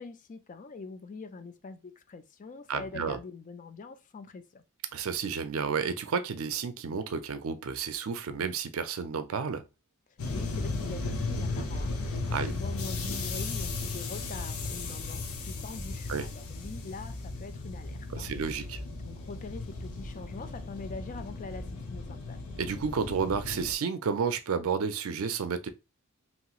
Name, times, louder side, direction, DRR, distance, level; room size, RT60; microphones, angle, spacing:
voice 1, 0.0-4.6 10.3-18.3 18.9-22.4, left 4 dB, 35° left, 0.4 m, -44 dB
voice 2, 2.7-3.2 4.9-9.6 12.3-12.5 16.1-16.3 18.1-18.8 22.6-25.7, right 6 dB, 70° right, 0.4 m, -31 dB
sound 1, 10.2-23.7, left 3 dB, 85° left, 0.7 m, -36 dB
3.0 x 2.9 x 2.3 m
head